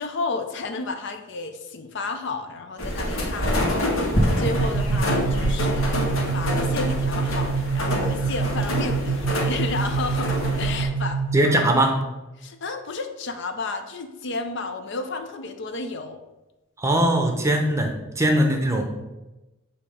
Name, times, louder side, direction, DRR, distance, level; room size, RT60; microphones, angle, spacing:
voice 1, 0.0-3.8 4.4-10.3 10.6-11.6 12.4-16.2, left 3 dB, 60° left, 7 dB, 0.6 m, -32 dB
sound 1, 2.8-10.9, equal, 85° left, 1.5 m, -26 dB
sound 2, 4.5-12.0, right 5 dB, 50° right, 0.3 m, -26 dB
voice 2, 11.3-12.0 16.8-18.8, right 1 dB, 15° right, 3 dB, 0.7 m, -21 dB
7.2 x 2.8 x 4.9 m, 1.0 s
head